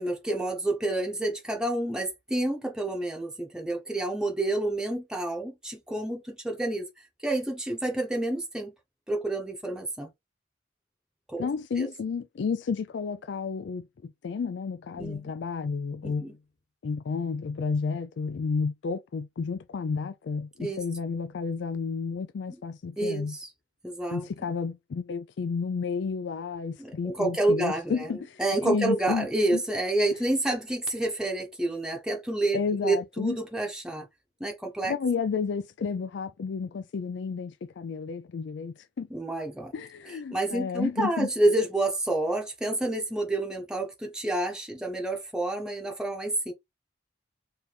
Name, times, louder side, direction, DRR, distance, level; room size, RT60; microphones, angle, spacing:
voice 1, 0.0-6.9 7.2-8.7 9.1-10.1 11.3-11.5 11.8-11.9 15.0-15.3 16.0-16.3 20.6-20.8 23.0-23.5 23.8-24.3 26.8-28.1 28.4-34.1 34.4-34.9 39.1-39.7 40.1-46.5, right 2 dB, 5° right, 0.8 m, -29 dB
voice 2, 11.4-16.3 16.8-23.4 24.1-29.6 32.5-33.4 34.8-39.1 39.7-41.3, left 5 dB, 70° left, 0.4 m, -31 dB
3.3 x 3.2 x 4.0 m
head